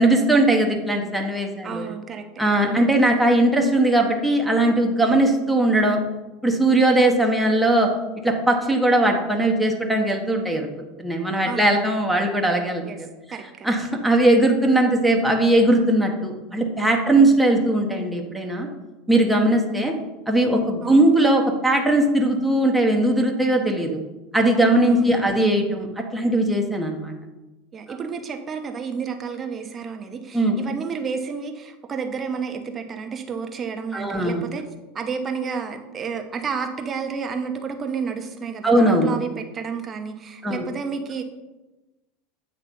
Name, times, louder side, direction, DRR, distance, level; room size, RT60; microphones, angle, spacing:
voice 1, 0.0-1.9 2.4-6.0 6.4-7.9 8.2-10.7 11.0-13.4 13.6-18.7 19.1-19.9 20.3-24.0 24.3-27.1 30.3-30.6 33.9-34.5 38.6-39.1 40.4-40.6, right 1 dB, 5° right, 1 dB, 1.0 m, -19 dB
voice 2, 1.6-2.9 7.0-7.2 11.4-11.9 12.8-13.0 13.3-13.7 17.2-17.4 19.2-19.5 20.8-21.0 24.8-25.3 27.7-34.6 34.9-41.2, right 5 dB, 30° right, 5 dB, 0.8 m, -31 dB
7.8 x 3.2 x 5.4 m, 1.1 s
hypercardioid pair, 95°, 0 cm